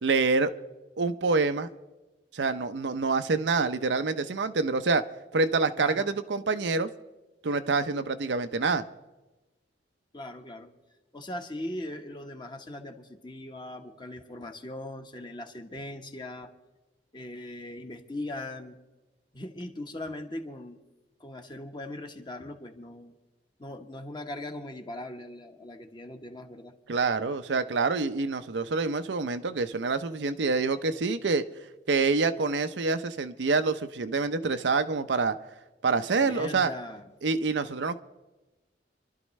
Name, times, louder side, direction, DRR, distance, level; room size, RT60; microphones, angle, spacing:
voice 1, 0.0-0.5 1.0-1.7 2.3-5.0 5.3-6.9 7.4-8.8 26.9-31.4 31.9-35.4 35.8-36.7 37.2-38.0, right 4 dB, 75° right, 9 dB, 0.6 m, -26 dB
voice 2, 5.8-6.1 10.1-10.7 11.1-16.5 17.1-18.8 19.3-20.8 21.2-23.1 23.6-26.7 36.2-37.1, left 1 dB, 25° left, 4 dB, 1.1 m, -39 dB
28.0 x 12.0 x 3.2 m, 1.1 s
head